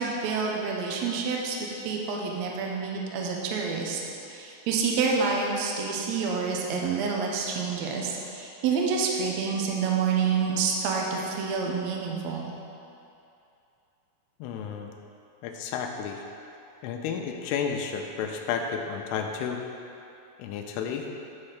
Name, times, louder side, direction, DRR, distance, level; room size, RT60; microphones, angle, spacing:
voice 1, 0.0-4.0 4.3-12.5, right 5 dB, 90° right, -1 dB, 1.5 m, -28 dB
voice 2, 14.4-14.9 15.4-16.2 16.8-19.6 20.4-21.1, left 6 dB, 90° left, 3 dB, 2.7 m, -32 dB
9.3 x 4.3 x 6.6 m, 2.7 s
omnidirectional pair, 4.6 m